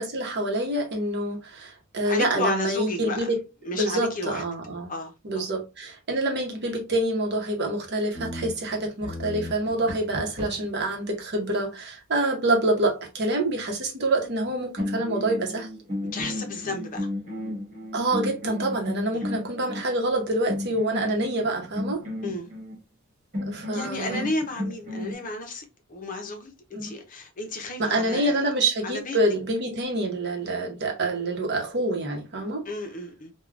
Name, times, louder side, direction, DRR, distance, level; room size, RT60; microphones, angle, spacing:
voice 1, 0.0-3.4 3.7-4.9 5.2-15.7 17.9-22.0 23.5-24.3 27.8-32.6, right 1 dB, 55° right, 0.8 m, -26 dB
voice 2, 2.1-3.3 3.6-4.4 4.9-5.5 16.1-17.1 19.1-19.2 22.2-22.5 23.7-28.5 28.8-29.2 32.6-33.3, left 2 dB, 40° left, 0.6 m, -33 dB
sound 1, 8.1-10.8 14.3-14.5 14.8-19.9 20.5-22.8 23.3-25.1, left 1 dB, 35° right, 1.4 m, -33 dB
3.6 x 2.2 x 2.3 m
head